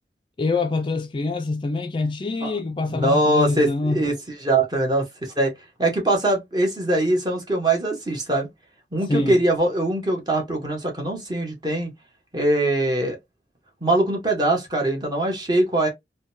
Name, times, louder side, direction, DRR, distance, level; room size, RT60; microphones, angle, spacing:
voice 1, 0.4-4.0 9.1-9.4, left 3 dB, 30° left, 0.3 m, -25 dB
voice 2, 2.9-4.1 4.4-5.5 5.8-8.5 8.9-11.9 12.3-13.2 13.8-15.9, right 1 dB, 25° right, 1.0 m, -22 dB
3.7 x 2.2 x 2.6 m
head